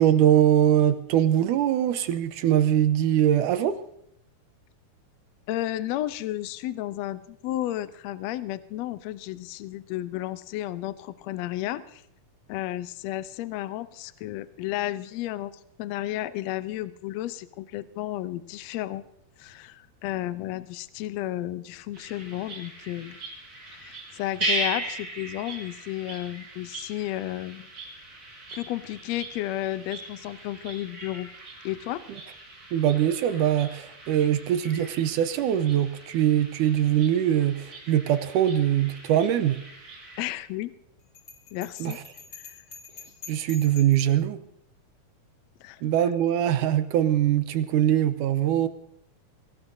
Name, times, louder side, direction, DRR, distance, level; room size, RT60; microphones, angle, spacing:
voice 1, 0.0-3.8 32.7-39.6 41.8-42.0 43.3-44.4 45.8-48.7, right 11 dB, 80° right, 10 dB, 2.2 m, -22 dB
voice 2, 5.5-12.0 12.5-15.5 15.8-19.0 19.4-23.2 23.7-27.7 28.5-31.3 31.6-32.0 40.2-40.7 41.5-42.0 42.3-42.6 45.6-45.8, left 15 dB, 85° left, 14 dB, 1.5 m, -32 dB
sound 1, 21.9-40.3, right 1 dB, 25° right, 4.3 m, -38 dB
Bell, 41.1-44.1, left 6 dB, 40° left, 2.1 m, -46 dB
23.5 x 17.5 x 2.7 m, 0.72 s
omnidirectional pair, 3.9 m